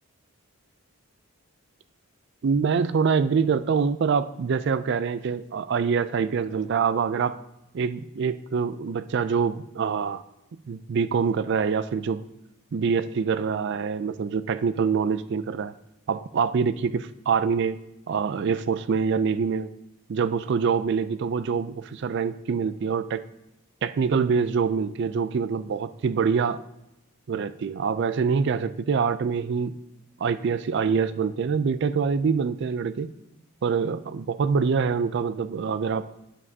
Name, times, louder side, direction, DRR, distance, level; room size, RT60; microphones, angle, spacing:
voice 1, 2.4-7.4 7.7-10.2 10.7-12.2 12.7-15.7 16.1-17.8 18.1-19.7 20.1-23.2 23.8-26.6 27.3-29.7 30.2-33.1 33.6-36.0, right 5 dB, 50° right, 13 dB, 0.3 m, -25 dB
9.8 x 7.2 x 2.7 m, 0.87 s
head